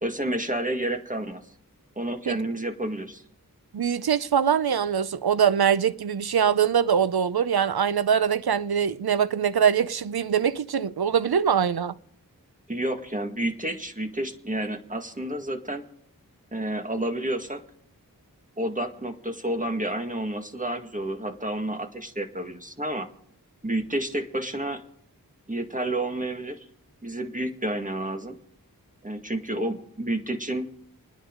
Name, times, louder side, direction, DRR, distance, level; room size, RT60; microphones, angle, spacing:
voice 1, 0.0-1.5 1.9-3.2 12.7-15.8 16.5-17.6 18.6-23.1 23.6-24.8 25.5-26.7 27.0-28.4 29.0-30.7, right 1 dB, 20° right, 1.8 m, -30 dB
voice 2, 3.7-12.0, right 8 dB, 90° right, 0.6 m, -23 dB
30.0 x 10.0 x 3.8 m
wide cardioid pair, 45°, 36 cm